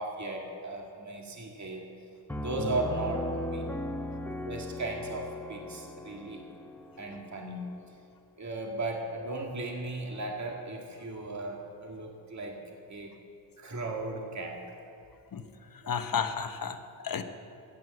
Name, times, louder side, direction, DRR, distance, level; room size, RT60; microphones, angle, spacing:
voice 1, 0.0-1.9 2.4-3.7 4.5-6.5 7.0-7.7 8.4-12.6 12.9-13.2 13.6-14.7, right 2 dB, 40° right, 1 dB, 2.0 m, -36 dB
Piano, 2.3-7.8, left 1 dB, 5° left, 1.0 m, -38 dB
voice 2, 15.3-17.2, left 6 dB, 50° left, 8 dB, 1.1 m, -33 dB
13.5 x 9.3 x 7.8 m, 2.6 s
cardioid pair, 80°, 45 cm